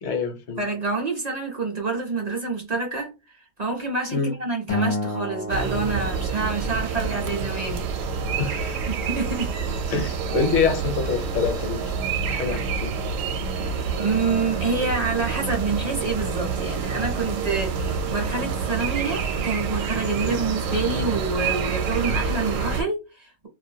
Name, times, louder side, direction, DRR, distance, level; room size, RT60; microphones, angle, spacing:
voice 1, 0.0-0.6 4.1-4.3 8.4-8.8 9.9-11.8 12.3-12.9 20.2-20.4, left 5 dB, 65° left, 0.9 m, -26 dB
voice 2, 0.6-7.9 8.9-9.5 14.0-23.5, right 4 dB, 45° right, 0.5 m, -27 dB
Acoustic guitar, 4.7-7.1, left 2 dB, 40° left, 0.4 m, -30 dB
sound 1, 5.5-22.8, right 5 dB, 75° right, 0.9 m, -27 dB
2.4 x 2.2 x 2.7 m
omnidirectional pair, 1.4 m